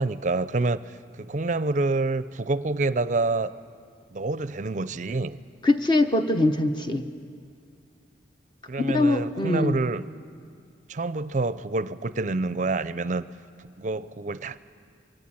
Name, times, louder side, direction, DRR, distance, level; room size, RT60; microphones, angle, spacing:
voice 1, 0.0-3.5 4.1-5.4 8.7-10.1 10.9-13.2 13.8-14.6, right 3 dB, 40° right, 15 dB, 0.5 m, -27 dB
voice 2, 5.6-7.1 8.8-9.8, left 2 dB, 25° left, 7 dB, 0.8 m, -22 dB
22.5 x 17.0 x 8.7 m, 2.3 s
head